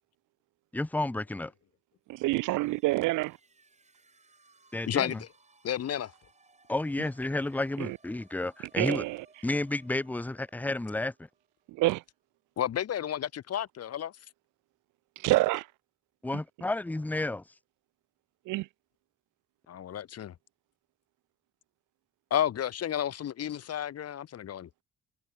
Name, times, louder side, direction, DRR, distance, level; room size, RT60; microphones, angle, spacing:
voice 1, 0.7-1.5 4.7-5.2 6.7-9.0 9.4-11.1 16.2-17.4, left 2 dB, 5° left, 0.6 m, -31 dB
sound 1, 2.1-11.9, right 3 dB, 20° right, 6.8 m, -64 dB
voice 2, 2.1-3.4 7.8-8.0 8.8-9.2 11.7-12.0 15.2-15.7 18.5-18.7, right 19 dB, 85° right, 0.5 m, -27 dB
voice 3, 4.9-5.3 5.6-6.1 12.6-14.1 19.7-20.3 22.3-24.7, left 10 dB, 55° left, 1.1 m, -31 dB
cardioid pair, 90°, 30 cm